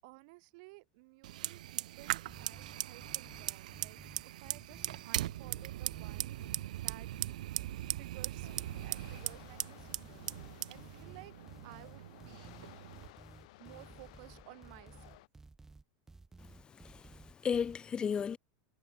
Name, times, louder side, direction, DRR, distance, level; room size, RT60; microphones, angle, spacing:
voice 1, 0.0-6.4 6.8-7.1 8.0-11.4 11.6-12.5 13.6-15.2, right 28 dB, 60° right, 7.4 m, -56 dB
Fire, 1.2-13.1, right 14 dB, 80° right, 1.7 m, -40 dB
sound 1, 2.3-17.8, right 3 dB, 10° right, 1.5 m, -55 dB
sound 2, 8.4-15.3, left 20 dB, 70° left, 1.8 m, -57 dB
voice 2, 16.5-18.4, left 7 dB, 20° left, 0.7 m, -35 dB
supercardioid pair, 120°, 4 cm